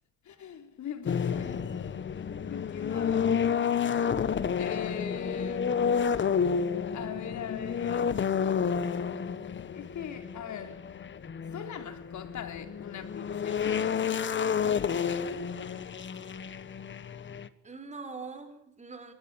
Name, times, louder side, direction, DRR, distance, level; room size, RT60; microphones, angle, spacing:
voice 1, 0.3-2.0 2.5-3.9 4.6-5.7 6.9-8.3 9.7-10.9 11.5-14.0, left 8 dB, 45° left, 3.9 m, -41 dB
sound 1, 1.1-17.5, left 7 dB, 30° left, 1.3 m, -30 dB
voice 2, 4.8-5.6 16.2-16.3 17.3-19.1, right 4 dB, 15° right, 4.8 m, -44 dB
24.0 x 19.0 x 8.8 m
cardioid pair, 110°, 40 cm